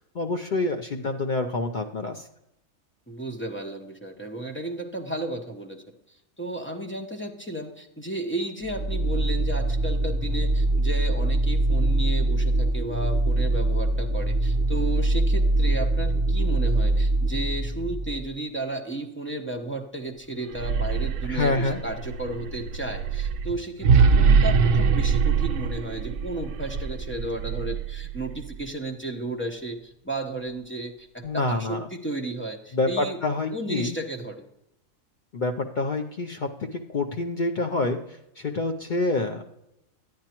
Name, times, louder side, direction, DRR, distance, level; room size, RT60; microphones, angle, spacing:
voice 1, 0.0-2.3 21.2-21.8 31.2-31.9 32.7-34.0 35.3-39.5, left 2 dB, 55° left, 4 dB, 0.5 m, -27 dB
voice 2, 3.1-5.8 6.4-33.2 33.5-34.4, right 2 dB, 10° left, 2 dB, 0.6 m, -33 dB
sound 1, 8.6-18.3, right 2 dB, 50° right, 0.7 m, -23 dB
sound 2, 20.4-28.5, right 5 dB, 85° right, 1.1 m, -23 dB
10.5 x 9.5 x 2.9 m, 0.83 s
omnidirectional pair, 1.5 m